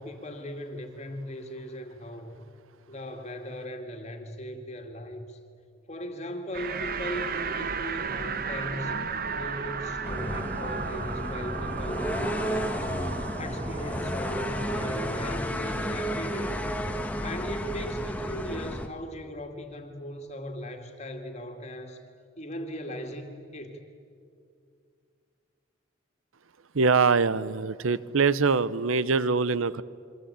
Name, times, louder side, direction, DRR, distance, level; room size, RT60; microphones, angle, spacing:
voice 1, 0.0-2.4 2.9-5.4 5.9-9.0 9.3-12.9 13.1-16.6 17.2-22.0 22.4-23.8, equal, 30° left, 4 dB, 2.3 m, -38 dB
sound 1, 6.5-15.4, right 5 dB, 45° right, 1.1 m, -34 dB
sound 2, 10.0-18.9, equal, 5° left, 1.3 m, -32 dB
voice 2, 26.7-29.8, right 4 dB, 75° right, 17 dB, 0.8 m, -23 dB
28.0 x 24.0 x 8.8 m, 2.3 s
head